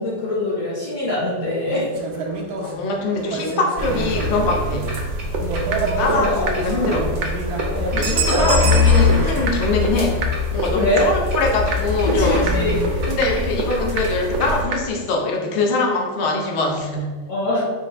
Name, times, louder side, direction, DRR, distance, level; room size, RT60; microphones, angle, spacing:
voice 1, 0.0-1.9 5.4-6.5 7.7-8.6 10.7-11.1 12.0-13.0 17.3-17.6, left 2 dB, 55° left, -7 dB, 1.1 m, -24 dB
sound 1, 1.9-9.4, right 4 dB, 70° right, 1.1 m, -27 dB
voice 2, 2.6-4.9 5.8-7.1 7.9-10.2 10.5-12.5 13.1-17.2, left 3 dB, 85° left, 1 dB, 0.6 m, -23 dB
sound 2, 3.8-14.6, left 3 dB, 55° right, 0.7 m, -23 dB
sound 3, 5.0-5.1 5.3-5.4 5.7-5.8 6.1-6.2 6.5-6.6 6.8-6.9 7.2-7.3 7.6-7.7 8.0-8.1 8.3-8.4 8.7-8.8 9.1-9.2 9.5-9.6 9.8-9.9 10.2-10.3 10.6-10.7 11.0-11.1 11.3-11.4 11.7-11.8 12.1-12.2 12.5-12.6 12.8-12.9 13.2-13.3 13.6-13.7 14.0-14.1 14.3-14.4 14.7-14.8, right 5 dB, 85° right, 1.3 m, -25 dB
3.9 x 2.0 x 4.1 m, 1.5 s
omnidirectional pair, 1.9 m